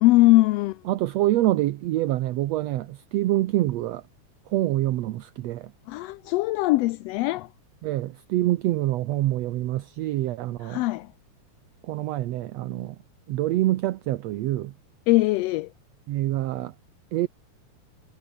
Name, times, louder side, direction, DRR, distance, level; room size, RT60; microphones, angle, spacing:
voice 1, 0.0-0.8 5.9-7.5 10.6-11.1 15.1-15.7, left 19 dB, 80° left, 1.5 m, -21 dB
voice 2, 0.9-4.0 4.5-5.7 7.8-10.8 11.8-13.0 13.3-14.7 16.1-16.7 17.1-17.3, right 15 dB, 70° right, 1.9 m, -26 dB
omnidirectional pair, 3.3 m